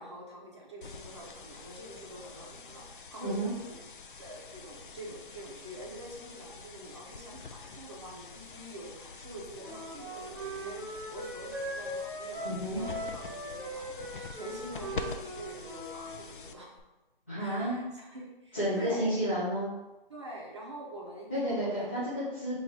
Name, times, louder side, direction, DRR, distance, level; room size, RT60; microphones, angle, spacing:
voice 1, 0.0-3.8 4.2-16.7 17.3-19.1 20.1-22.2, right 1 dB, 30° right, -3 dB, 0.7 m, -45 dB
sound 1, 0.8-16.8, left 4 dB, 60° left, 0.5 m, -46 dB
voice 2, 3.2-3.5 12.4-12.8 17.3-17.8 18.5-19.7 21.3-22.6, equal, 15° left, -16 dB, 0.6 m, -31 dB
Wind instrument woodwind instrument, 9.6-16.1, right 1 dB, 10° right, 1.2 m, -40 dB
4.1 x 2.5 x 4.6 m, 1.0 s
hypercardioid pair, 175°, 29 cm